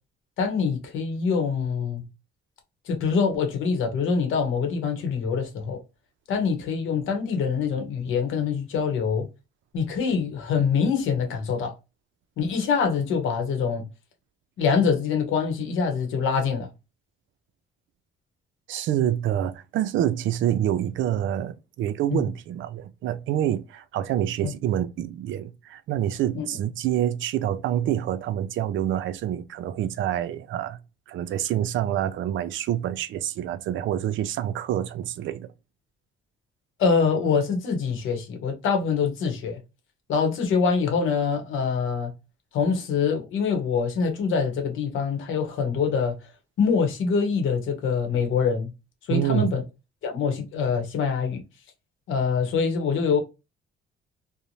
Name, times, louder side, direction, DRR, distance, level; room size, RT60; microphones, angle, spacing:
voice 1, 0.4-2.0 2.9-5.8 6.3-9.3 9.7-11.7 12.4-13.9 14.6-16.7 22.1-22.2 24.4-24.5 26.3-26.5 36.8-39.6 40.1-42.1 42.5-46.2 46.6-48.7 49.1-49.6 50.0-51.4 52.1-53.2, left 5 dB, 80° left, 0.8 m, -24 dB
voice 2, 18.7-30.8 31.1-35.5 49.1-49.6, right 11 dB, 75° right, 0.4 m, -27 dB
2.6 x 2.1 x 2.9 m
cardioid pair, 90°, 20 cm